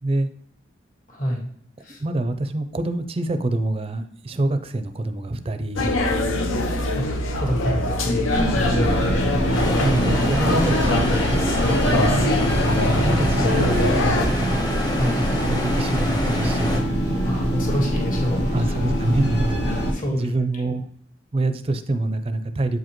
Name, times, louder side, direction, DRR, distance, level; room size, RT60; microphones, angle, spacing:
voice 1, 1.1-1.4 1.8-2.0 6.9-8.3 8.5-8.9 9.2-9.8 14.9-15.2 17.2-18.8 19.6-20.3, equal, 45° left, -1 dB, 1.5 m, -28 dB
voice 2, 2.0-6.4 8.6-9.5 9.8-11.2 11.8-12.3 12.8-14.8 15.2-17.2 18.5-19.8 20.1-20.9 21.3-22.8, right 2 dB, 30° right, 9 dB, 0.4 m, -26 dB
sound 1, 5.8-14.3, left 1 dB, 85° left, 0.8 m, -23 dB
sound 2, 8.3-19.9, equal, 60° left, 1.2 m, -24 dB
sound 3, 9.5-16.8, equal, 20° left, 1.0 m, -28 dB
7.9 x 4.9 x 3.0 m, 0.63 s
head